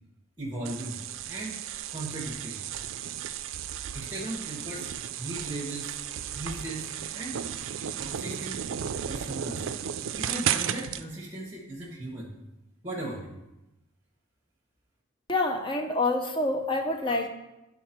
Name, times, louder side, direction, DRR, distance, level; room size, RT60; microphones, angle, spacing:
voice 1, 0.4-1.0 1.3-1.6 1.9-2.6 3.9-4.9 5.2-6.0 6.3-7.4 8.0-8.6 9.1-9.7 10.1-12.4 12.8-13.4, right 1 dB, 20° right, -3 dB, 1.1 m, -37 dB
sound 1, 0.6-11.0, right 9 dB, 70° right, 0.4 m, -34 dB
voice 2, 15.3-17.3, left 2 dB, 20° left, 4 dB, 0.7 m, -27 dB
11.0 x 4.2 x 4.4 m, 0.95 s
head